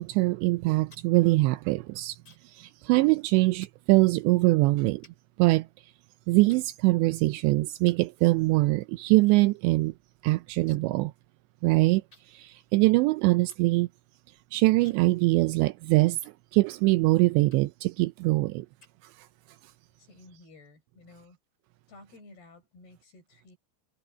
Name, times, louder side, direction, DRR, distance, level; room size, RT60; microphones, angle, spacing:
voice 1, 0.0-2.2 2.5-5.1 5.4-5.7 6.3-9.9 10.2-11.1 11.6-12.0 12.3-13.9 14.5-16.2 16.5-18.7, right 21 dB, 80° right, 2.7 m, -23 dB
sound 1, 0.6-2.6 2.9-3.2 3.6-3.8 4.5-4.6 5.0-6.0 6.5-7.3 7.8-8.1 8.4-9.4 9.7-9.8 10.0-11.0 11.3-11.4 12.1-16.9 17.5-17.9 18.4-19.4, left 2 dB, 20° left, 4.5 m, -60 dB
voice 2, 20.0-21.4 21.9-23.6, left 2 dB, 55° left, 8.3 m, -53 dB
omnidirectional pair, 5.4 m